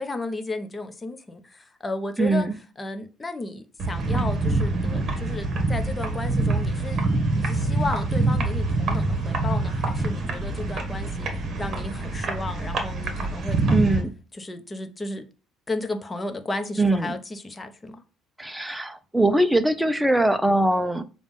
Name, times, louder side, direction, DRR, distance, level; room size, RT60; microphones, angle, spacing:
voice 1, 0.0-2.5 2.8-7.0 7.3-14.0 14.4-15.2 15.7-18.0, left 2 dB, 20° left, 0.9 m, -33 dB
voice 2, 2.2-2.6 13.7-14.1 16.8-17.1 18.4-21.0, right 1 dB, 5° right, 0.7 m, -22 dB
sound 1, 3.8-14.0, right 2 dB, 45° right, 1.5 m, -25 dB
6.9 x 2.5 x 5.5 m
cardioid pair, 100°, 0 cm